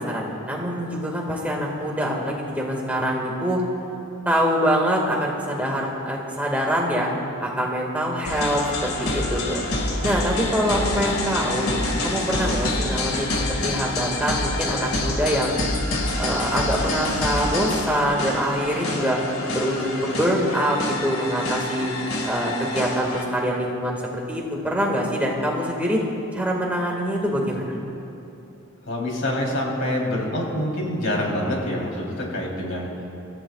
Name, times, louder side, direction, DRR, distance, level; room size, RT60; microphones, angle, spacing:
voice 1, 0.0-3.6 4.3-7.1 7.4-9.6 10.0-13.3 13.6-15.6 16.1-19.2 19.5-21.9 22.2-24.0 24.3-26.0 26.3-27.6, equal, 5° right, -2 dB, 1.9 m, -24 dB
sound 1, 8.2-23.2, left 2 dB, 85° left, 2.1 m, -27 dB
voice 2, 28.9-32.9, left 1 dB, 65° left, -2 dB, 3.4 m, -26 dB
26.0 x 15.0 x 2.4 m, 2.9 s
head